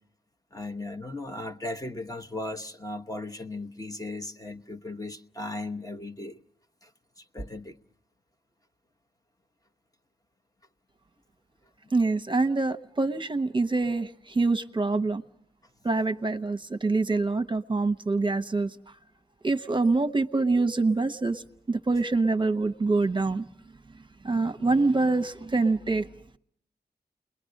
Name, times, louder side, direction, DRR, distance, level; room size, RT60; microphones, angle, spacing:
voice 1, 0.5-6.4 6.8-6.9 7.2-7.8, left 2 dB, 20° left, 1.1 m, -37 dB
voice 2, 11.9-15.2 15.8-18.7 19.4-23.5 24.2-26.1, right 3 dB, 30° right, 0.9 m, -25 dB
28.5 x 21.5 x 6.5 m
cardioid pair, 55°, 16 cm